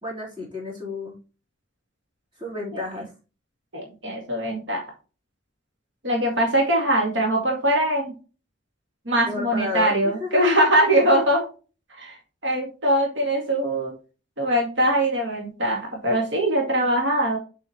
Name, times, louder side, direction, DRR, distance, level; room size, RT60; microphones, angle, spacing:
voice 1, 0.0-1.1 2.4-3.1 9.3-10.4, left 3 dB, 25° right, -4 dB, 4.2 m, -32 dB
voice 2, 3.7-4.8 6.0-8.1 9.1-11.4 11.9-12.2 12.4-13.9 14.4-17.4, right 1 dB, 75° right, -1 dB, 2.1 m, -22 dB
7.0 x 5.5 x 3.0 m, 0.34 s
head